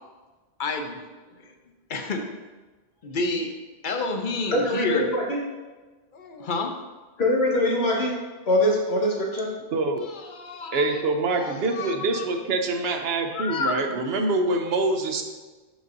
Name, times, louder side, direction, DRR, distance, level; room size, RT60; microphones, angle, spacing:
voice 1, 0.6-1.5 1.9-2.3 3.0-3.5 3.8-5.2 6.1-6.8 10.0-11.0 11.4-12.3 12.7-12.8 13.3-13.8, left 3 dB, 55° left, 4 dB, 0.8 m, -30 dB
voice 2, 4.5-5.4 7.2-8.1 8.5-9.5, left 1 dB, 90° left, -3 dB, 1.6 m, -23 dB
voice 3, 9.7-10.0 10.7-15.2, right 2 dB, 75° right, 5 dB, 0.9 m, -25 dB
11.0 x 4.0 x 2.6 m, 1.2 s
omnidirectional pair, 1.0 m